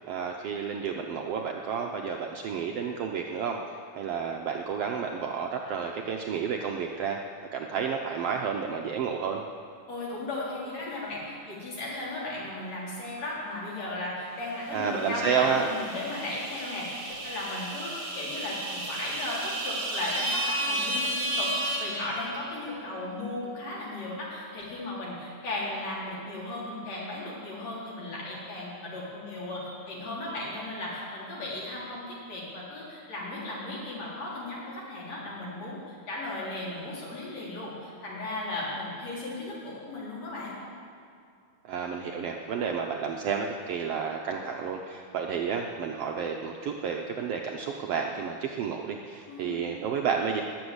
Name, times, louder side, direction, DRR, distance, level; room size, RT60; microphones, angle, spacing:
voice 1, 0.1-7.2 7.5-9.4 14.7-15.7 41.6-50.4, right 6 dB, 70° right, 2 dB, 1.5 m, -31 dB
voice 2, 9.9-40.5 49.3-49.6, left 2 dB, 60° left, -6 dB, 4.7 m, -36 dB
sound 1, 14.7-22.7, right 1 dB, 55° right, 3.4 m, -33 dB
20.0 x 7.1 x 8.0 m, 2.5 s
omnidirectional pair, 3.5 m